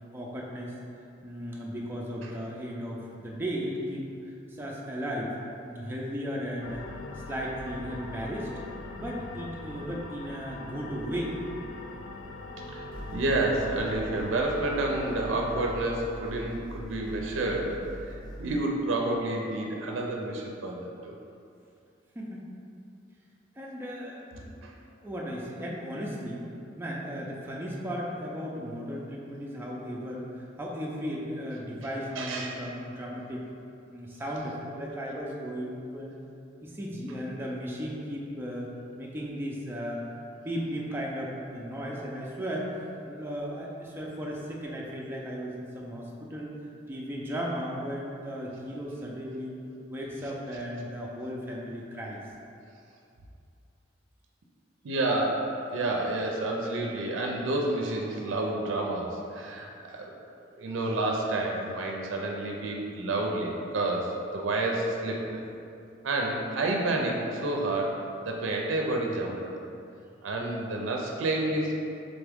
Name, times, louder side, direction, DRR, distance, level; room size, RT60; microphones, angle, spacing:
voice 1, 0.1-0.8 1.2-6.8 7.3-8.5 9.0-11.4 22.2-22.5 23.5-24.6 25.0-26.4 26.8-30.3 30.6-33.4 33.9-36.2 36.6-38.7 38.9-42.7 43.0-46.5 46.9-49.6 49.9-52.2, equal, 10° right, -4 dB, 0.4 m, -35 dB
sound 1, 6.6-15.9, left 3 dB, 90° left, 0.3 m, -41 dB
voice 2, 12.7-21.1 24.6-24.7 32.1-32.6 54.8-60.2 60.6-65.4 66.0-69.6 70.2-71.9, right 2 dB, 85° right, 0 dB, 0.5 m, -30 dB
sound 2, 12.9-18.5, equal, 20° left, 0.9 m, -42 dB
3.8 x 3.5 x 3.4 m, 2.6 s
head